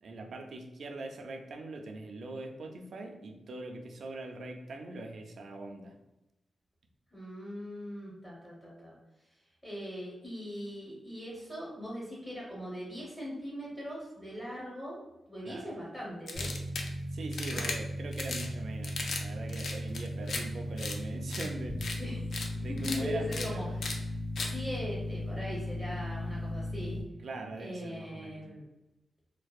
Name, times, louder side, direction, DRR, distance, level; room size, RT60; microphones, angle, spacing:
voice 1, 0.0-6.0 15.4-15.7 17.1-21.9 22.6-23.7 27.2-28.4, right 2 dB, 65° right, 4 dB, 0.3 m, -42 dB
voice 2, 7.1-9.0 9.6-15.0 15.3-16.5 17.5-17.7 22.0-22.2 22.8-23.6 23.9-24.1 24.4-27.0 27.6-28.6, equal, 10° left, -6 dB, 0.7 m, -40 dB
sound 1, 16.3-27.0, left 1 dB, 85° left, 0.9 m, -37 dB
sound 2, 16.3-16.9 17.3-17.8 18.1-18.5 18.8-19.2 19.5-20.4 20.8-21.0 21.3-21.5 21.8-22.0 22.3-22.5 22.8-23.0 23.3-23.5 23.8-24.0 24.4-24.5, left 3 dB, 70° left, 0.3 m, -36 dB
2.6 x 2.1 x 2.3 m, 0.93 s
cardioid pair, 90°, 0 cm